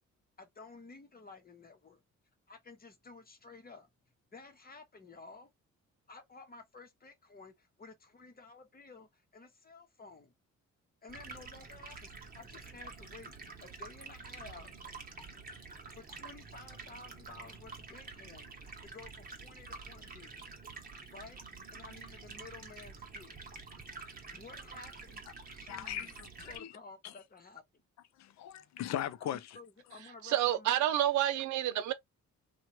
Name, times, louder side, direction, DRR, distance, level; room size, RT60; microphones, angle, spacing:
voice 1, 0.4-2.0 2.5-3.9 4.3-5.5 6.1-10.3 11.0-14.7 15.9-20.5 21.1-21.4 21.7-23.4 24.3-25.2 25.6-26.1 26.4-27.6 29.2-29.3 29.5-30.9, left 3 dB, 30° left, 1.0 m, -53 dB
Stream, 11.1-26.6, right 4 dB, 30° right, 1.1 m, -48 dB
voice 2, 25.7-26.7 27.0-27.1 28.2-29.4, left 11 dB, 65° left, 0.5 m, -38 dB
voice 3, 30.0-31.9, right 12 dB, 70° right, 0.5 m, -29 dB
2.8 x 2.4 x 2.9 m
cardioid pair, 90°, 30 cm